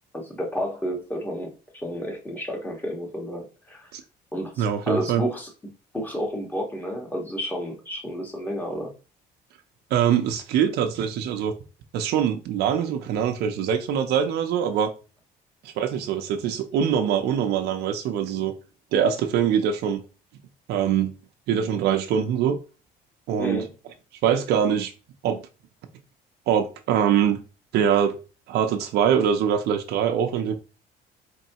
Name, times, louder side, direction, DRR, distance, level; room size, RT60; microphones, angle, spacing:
voice 1, 0.1-3.9 4.3-5.5 5.9-8.9 23.4-23.7, equal, 10° left, 0 dB, 1.4 m, -31 dB
voice 2, 4.6-5.2 9.9-11.5 11.9-14.9 15.6-18.5 18.9-20.0 20.7-21.1 21.5-22.6 23.3-23.6 24.2-24.9 25.2-25.4 26.5-27.4 27.7-28.1 28.5-30.5, right 8 dB, 75° right, 5 dB, 0.6 m, -23 dB
4.4 x 3.1 x 2.9 m, 0.33 s
cardioid pair, 110°, 17 cm